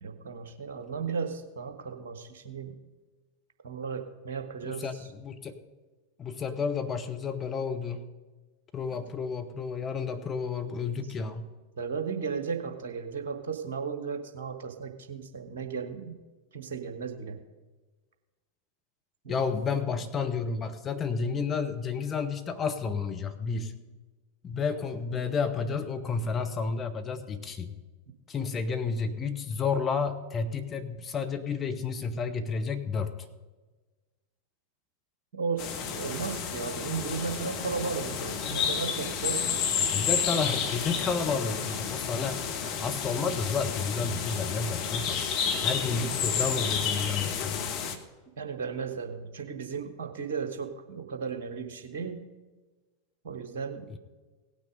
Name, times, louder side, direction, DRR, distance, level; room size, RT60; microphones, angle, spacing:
voice 1, 0.0-2.8 3.6-5.1 11.8-16.1 16.5-17.4 19.2-19.5 35.3-39.6 48.4-52.2 53.2-53.9, right 5 dB, 60° right, 6 dB, 1.3 m, -35 dB
voice 2, 4.6-5.6 6.2-8.0 8.7-11.5 19.3-23.7 24.4-27.8 28.3-33.1 39.9-42.4 42.8-45.2 45.6-47.7 53.9-54.0, left 5 dB, 20° left, 6 dB, 1.0 m, -31 dB
sound 1, 35.6-48.0, left 7 dB, 40° left, 1.1 m, -31 dB
17.5 x 6.1 x 5.1 m, 1.3 s
figure-of-eight pair, 90°, 0 cm